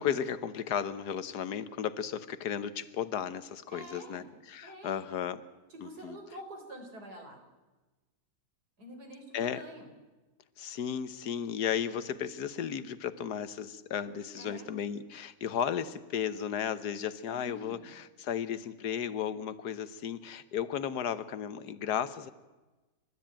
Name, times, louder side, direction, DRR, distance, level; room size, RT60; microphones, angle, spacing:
voice 1, 0.0-5.4 5.8-6.2 9.3-9.6 10.6-22.3, left 8 dB, 90° left, 14 dB, 1.6 m, -34 dB
voice 2, 3.7-4.3 4.6-5.0 5.7-7.4 8.8-9.9 14.4-14.7 17.3-17.9, equal, 80° right, 3 dB, 4.4 m, -47 dB
29.5 x 13.0 x 8.9 m, 1.2 s
omnidirectional pair, 1.7 m